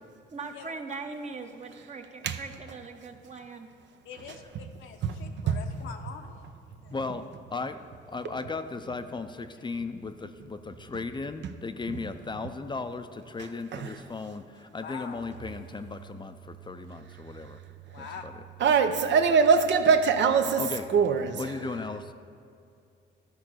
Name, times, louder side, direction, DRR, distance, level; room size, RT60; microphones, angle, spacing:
voice 1, 0.3-3.7, right 4 dB, 35° right, 4 dB, 1.0 m, -40 dB
voice 2, 4.0-6.4 6.8-6.9 14.8-15.2 17.9-18.2, left 7 dB, 85° left, 4 dB, 0.9 m, -43 dB
voice 3, 6.9-17.6 18.0-18.5 20.6-20.9 21.4-22.1, left 4 dB, 25° left, 9 dB, 0.5 m, -36 dB
voice 4, 18.6-20.6 20.9-21.4, right 6 dB, 65° right, 7 dB, 0.7 m, -22 dB
13.0 x 4.7 x 6.3 m, 2.4 s
cardioid pair, 90°, 20 cm